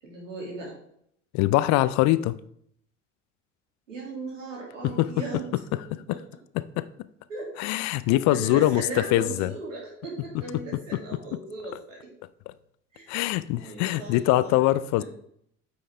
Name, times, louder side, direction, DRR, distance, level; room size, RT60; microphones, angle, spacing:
voice 1, 0.0-0.7 3.9-5.8 6.1-6.2 7.3-12.1 12.9-13.1 13.5-14.5, right 3 dB, 85° right, 2.5 m, -38 dB
voice 2, 1.3-2.3 5.0-5.1 6.8-6.9 7.6-8.8 9.1-9.5 13.1-15.0, left 15 dB, 50° left, 0.5 m, -22 dB
8.6 x 5.5 x 3.3 m
hypercardioid pair, 70°, 37 cm